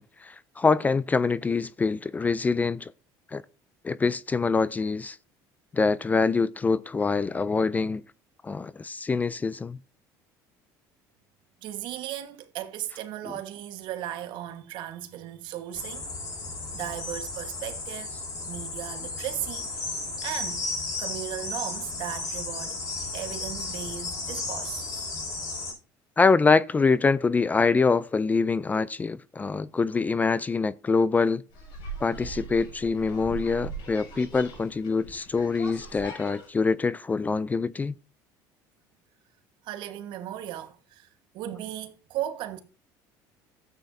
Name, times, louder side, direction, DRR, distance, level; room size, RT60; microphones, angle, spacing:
voice 1, 0.0-2.9 3.3-3.4 3.8-5.2 5.7-8.0 8.4-9.8 26.2-31.4 32.0-37.9, left 4 dB, 20° left, 0.4 m, -25 dB
voice 2, 11.6-16.1 16.7-18.1 18.5-19.9 20.2-20.7 21.0-22.8 23.1-25.1 39.6-41.1 41.3-42.6, right 12 dB, 65° right, 1.3 m, -36 dB
sound 1, 15.7-25.7, left 3 dB, 45° left, 6.0 m, -34 dB
sound 2, 31.5-36.5, right 3 dB, 65° left, 6.2 m, -40 dB
13.0 x 8.4 x 2.6 m
supercardioid pair, 110°, 9 cm